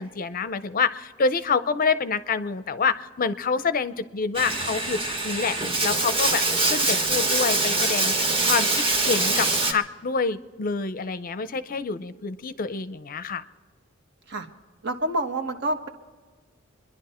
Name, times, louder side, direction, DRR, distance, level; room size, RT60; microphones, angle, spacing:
voice 1, 0.0-13.4, left 5 dB, 45° left, 13 dB, 0.6 m, -27 dB
Bathtub (filling or washing), 4.3-9.7, right 2 dB, 25° right, 1.2 m, -24 dB
voice 2, 14.8-15.9, right 1 dB, 55° right, 6 dB, 1.2 m, -27 dB
27.5 x 11.0 x 4.3 m, 1.4 s
head